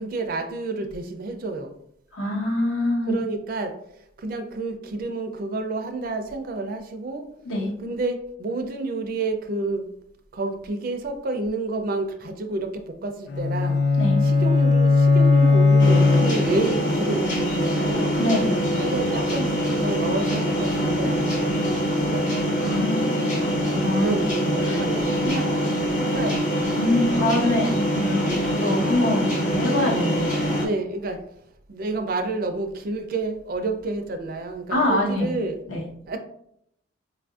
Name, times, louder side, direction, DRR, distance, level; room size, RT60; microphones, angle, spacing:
voice 1, 0.0-1.7 3.1-3.8 4.2-7.2 7.8-9.9 10.3-13.8 14.2-18.1 18.8-22.4 24.0-25.5 26.0-26.4 30.6-31.2 31.7-35.6 36.1-36.2, right 2 dB, 45° right, 5 dB, 0.4 m, -29 dB
voice 2, 2.1-3.2 7.4-7.7 14.0-14.2 18.2-18.6 22.6-24.2 24.6-24.8 26.7-30.4 34.7-35.3 35.7-35.9, left 1 dB, 75° left, -2 dB, 0.9 m, -25 dB
sound 1, 13.3-16.8, left 3 dB, 55° left, 0.3 m, -18 dB
sound 2, 15.8-30.7, equal, 40° left, 0.7 m, -24 dB
4.6 x 2.5 x 2.3 m, 0.74 s
head